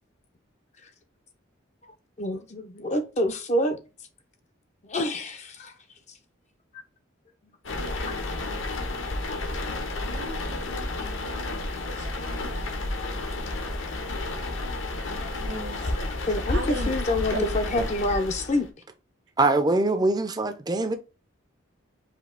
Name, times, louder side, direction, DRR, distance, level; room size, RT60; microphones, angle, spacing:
voice 1, 2.2-3.8 4.8-5.7 8.1-8.2 13.7-13.8 15.2-18.7, left 1 dB, 35° left, 0.5 m, -28 dB
sound 1, 7.6-18.7, left 2 dB, 75° left, 1.0 m, -31 dB
voice 2, 10.1-10.8 11.2-12.5 15.4-15.8 16.5-16.9 17.3-17.4, right 1 dB, 60° right, 1.0 m, -36 dB
voice 3, 19.4-21.0, right 2 dB, 20° right, 0.5 m, -23 dB
5.1 x 2.7 x 3.7 m
head